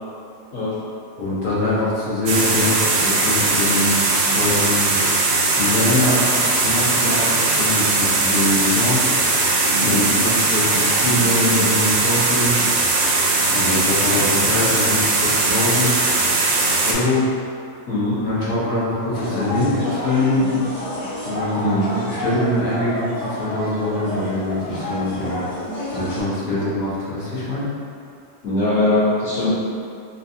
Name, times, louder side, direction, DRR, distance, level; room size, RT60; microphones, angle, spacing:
voice 1, 1.2-4.0 4.3-5.0 5.6-6.3 6.5-9.4 9.8-12.5 13.5-16.0 16.8-17.2 18.2-20.6 21.2-25.4 25.9-27.7, left 1 dB, 65° left, -8 dB, 1.4 m, -23 dB
sound 1, 2.3-16.9, right 3 dB, 90° right, 1.3 m, -19 dB
voice 2, 17.9-18.2 21.6-22.1 24.7-24.8 26.4-26.7 28.4-29.5, left 2 dB, 45° left, -16 dB, 1.5 m, -22 dB
sound 2, 19.1-26.2, left 1 dB, 25° left, 0.7 m, -29 dB
3.7 x 2.5 x 2.7 m, 2.4 s
omnidirectional pair, 1.9 m